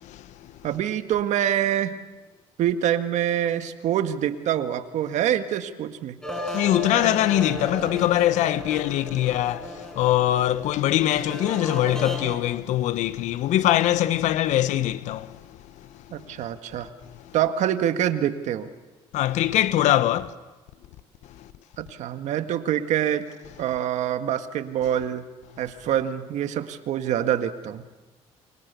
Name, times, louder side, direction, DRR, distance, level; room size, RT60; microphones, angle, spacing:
voice 1, 0.6-2.0 2.6-6.2 16.1-16.9 17.3-18.7 21.8-23.3 23.6-25.3 25.6-27.8, right 10 dB, 70° right, 1.8 m, -25 dB
sound 1, 6.2-12.4, equal, 5° left, 6.2 m, -34 dB
voice 2, 6.5-15.4 19.1-20.3, left 13 dB, 80° left, 1.2 m, -22 dB
29.5 x 25.0 x 7.0 m
cardioid pair, 85°, 12 cm